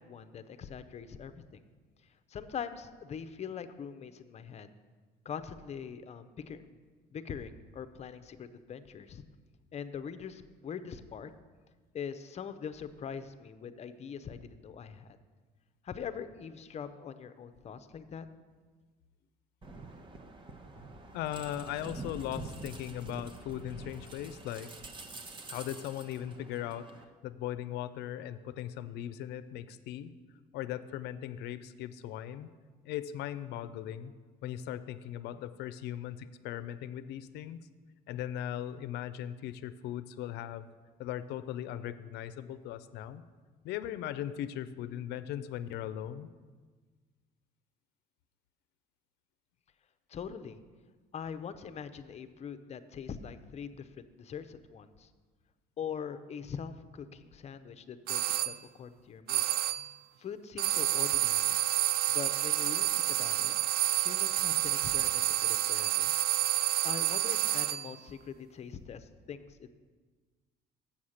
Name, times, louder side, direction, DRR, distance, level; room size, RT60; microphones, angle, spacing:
voice 1, 0.0-1.6 2.3-4.7 5.2-6.8 7.1-9.2 9.7-11.3 11.9-15.2 15.8-18.3 50.1-50.6 51.1-55.1 55.8-59.5 60.2-61.6 62.1-63.5 64.0-66.1 66.8-69.7, left 7 dB, 40° left, 11 dB, 0.6 m, -42 dB
sound 1, 19.6-27.0, right 3 dB, 30° right, 0.9 m, -46 dB
voice 2, 21.1-24.7 25.5-26.9 27.2-30.1 30.5-32.5 32.8-34.1 34.4-37.6 38.1-40.7 41.0-43.2 43.6-46.3, left 11 dB, 80° left, 13 dB, 0.5 m, -38 dB
sound 2, 58.1-58.6 59.3-59.9 60.6-67.9, right 14 dB, 65° right, 0.4 m, -29 dB
7.3 x 7.2 x 6.4 m, 1.4 s
cardioid pair, 110°, 17 cm